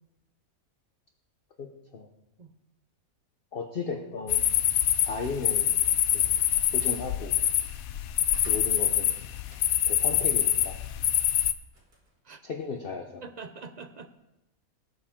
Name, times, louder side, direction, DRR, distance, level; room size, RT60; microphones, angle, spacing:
voice 1, 1.6-2.1 3.5-4.4 5.1-5.8 6.1-6.4 6.7-7.3 8.5-9.1 9.8-10.8 12.4-13.2, left 4 dB, 45° left, 4 dB, 0.9 m, -35 dB
sound 1, 4.3-11.5, left 11 dB, 75° left, 1.0 m, -25 dB
Slam, 6.0-7.1 7.6-10.0 10.4-12.8, equal, 75° right, 2.8 m, -49 dB
voice 2, 13.2-14.1, right 4 dB, 45° right, 8 dB, 0.5 m, -44 dB
18.5 x 7.4 x 3.6 m, 0.93 s
omnidirectional pair, 1.5 m